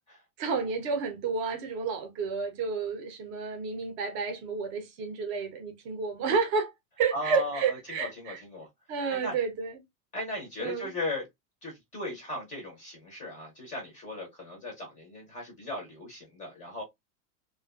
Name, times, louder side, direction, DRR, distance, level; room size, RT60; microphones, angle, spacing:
voice 1, 0.4-6.7 7.0-8.4 8.9-9.8 10.6-10.9, right 5 dB, 30° right, 0.6 m, -30 dB
voice 2, 7.1-8.7 9.1-9.3 10.1-11.3 11.6-16.8, left 1 dB, 15° left, 0.6 m, -37 dB
2.4 x 2.3 x 2.3 m
supercardioid pair, 155°, 44 cm